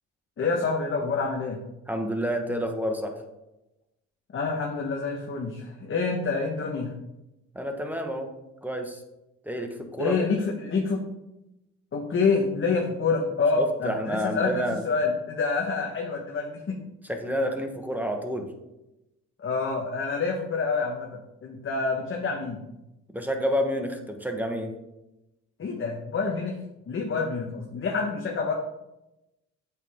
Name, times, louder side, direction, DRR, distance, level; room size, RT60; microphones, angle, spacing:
voice 1, 0.4-1.6 4.3-6.9 10.0-11.1 11.9-16.8 19.4-22.7 25.6-26.6 26.9-28.5, left 4 dB, 45° left, 0 dB, 1.2 m, -27 dB
voice 2, 1.9-3.1 7.5-8.3 8.6-9.0 9.4-10.1 13.6-14.8 17.1-18.5 23.1-24.7, equal, 5° right, 4 dB, 1.2 m, -29 dB
8.1 x 6.3 x 3.6 m, 0.94 s
cardioid pair, 90°, 30 cm